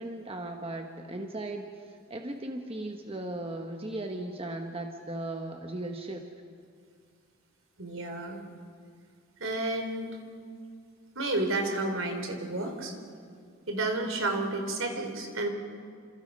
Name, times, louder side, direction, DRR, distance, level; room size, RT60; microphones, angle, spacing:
voice 1, 0.0-6.2, right 1 dB, 25° right, 3 dB, 1.3 m, -37 dB
voice 2, 7.8-8.4 9.4-10.2 11.2-12.9 13.7-15.5, right 2 dB, 70° right, 5 dB, 3.6 m, -31 dB
28.5 x 27.0 x 5.5 m, 2.2 s
head